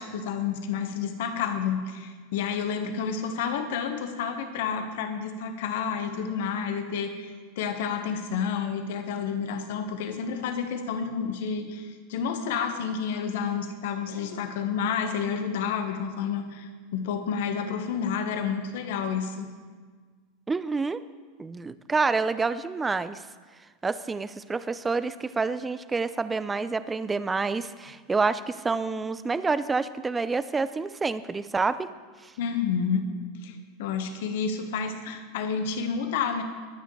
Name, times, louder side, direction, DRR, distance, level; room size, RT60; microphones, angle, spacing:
voice 1, 0.0-19.5 32.4-33.1 33.4-36.4, left 6 dB, 65° left, 7 dB, 1.4 m, -30 dB
voice 2, 20.5-21.0 21.4-23.3 23.8-31.9 32.2-32.3, right 4 dB, 15° right, 14 dB, 0.7 m, -28 dB
23.0 x 9.0 x 3.4 m, 1.5 s
hypercardioid pair, 90°, 0 cm